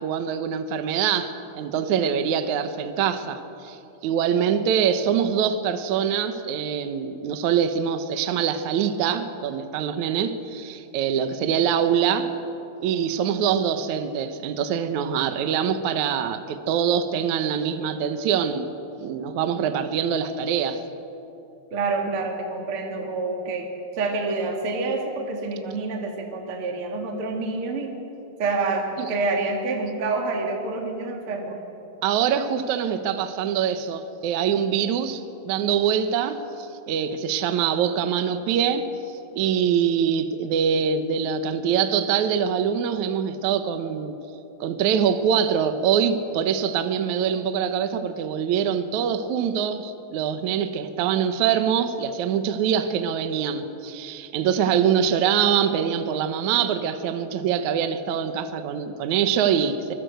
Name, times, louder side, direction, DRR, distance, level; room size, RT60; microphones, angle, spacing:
voice 1, 0.0-12.3 12.8-18.7 19.0-20.8 29.0-29.1 32.0-38.9 39.3-44.2 44.6-59.9, right 8 dB, 65° right, 8 dB, 2.1 m, -24 dB
voice 2, 21.7-23.7 23.9-27.9 28.4-31.6, right 3 dB, 40° right, 1 dB, 2.8 m, -27 dB
25.0 x 21.5 x 8.0 m, 2.8 s
omnidirectional pair, 4.1 m